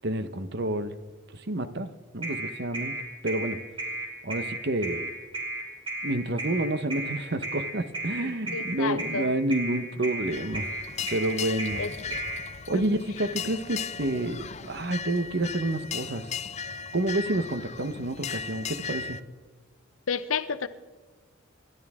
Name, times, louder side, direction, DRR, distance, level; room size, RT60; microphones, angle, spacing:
voice 1, 0.0-0.9 1.3-3.0 3.2-3.6 4.2-5.1 6.0-10.7 11.1-11.8 12.7-16.3 16.9-19.2, right 1 dB, 55° right, 1.0 m, -29 dB
sound 1, 2.2-12.4, right 2 dB, 25° right, 3.4 m, -33 dB
voice 2, 8.2-9.3 11.8-12.2 12.7-12.8 20.1-20.7, left 5 dB, 90° left, 0.8 m, -31 dB
sound 2, 10.3-19.2, left 6 dB, 35° left, 0.5 m, -37 dB
28.0 x 12.0 x 3.7 m
head